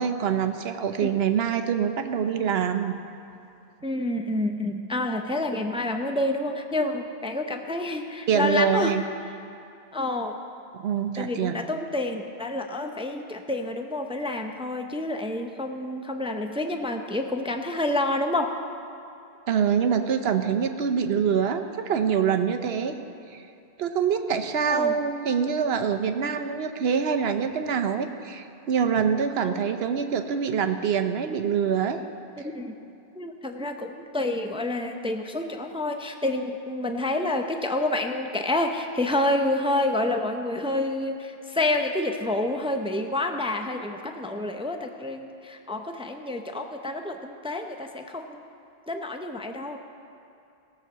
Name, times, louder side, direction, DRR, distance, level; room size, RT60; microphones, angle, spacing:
voice 1, 0.0-3.0 8.3-9.0 10.7-11.6 19.5-23.0 23.3-23.4 23.8-32.0, right 7 dB, 75° right, 7 dB, 1.0 m, -25 dB
voice 2, 3.8-9.0 9.9-10.4 11.2-18.6 24.7-24.9 29.4-29.7 32.4-32.7 33.2-48.4 48.9-49.8, left 2 dB, 10° right, 5 dB, 0.4 m, -28 dB
17.0 x 6.3 x 6.8 m, 2.7 s
omnidirectional pair, 1.1 m